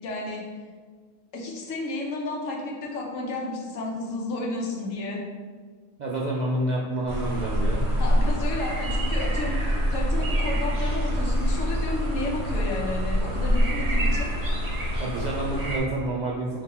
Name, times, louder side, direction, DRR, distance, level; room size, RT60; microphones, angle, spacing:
voice 1, 0.0-0.4 1.3-5.2 8.0-9.6 9.9-14.3, left 2 dB, 75° left, -1 dB, 1.2 m, -32 dB
voice 2, 6.0-7.9 15.0-16.6, right 1 dB, 75° right, -4 dB, 0.4 m, -28 dB
sound 1, 7.1-15.8, equal, 45° right, 0.9 m, -25 dB
4.0 x 2.8 x 4.1 m, 1.5 s
omnidirectional pair, 1.3 m